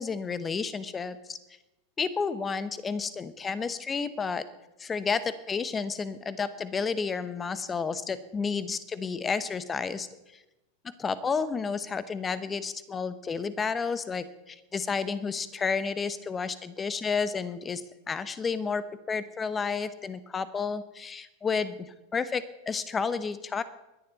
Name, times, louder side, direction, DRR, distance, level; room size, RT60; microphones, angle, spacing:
voice 1, 0.0-1.4 2.0-4.4 4.8-10.1 10.3-10.4 10.8-17.8 18.1-23.6, left 5 dB, 20° left, 14 dB, 1.1 m, -31 dB
22.5 x 10.5 x 4.2 m, 0.99 s
hypercardioid pair, 95°, 0 cm